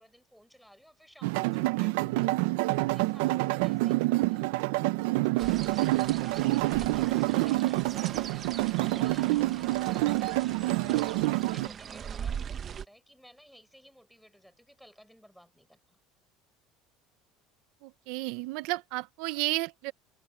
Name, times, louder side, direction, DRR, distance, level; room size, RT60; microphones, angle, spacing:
voice 1, 0.0-2.3 2.9-4.5 5.1-16.0, equal, ahead, 7.4 m, -57 dB
sound 1, 1.2-11.7, right 20 dB, 85° right, 0.6 m, -27 dB
sound 2, 5.4-12.8, right 7 dB, 30° right, 1.1 m, -41 dB
voice 2, 17.8-19.9, right 20 dB, 70° right, 1.0 m, -32 dB
cardioid pair, 155°, 0 cm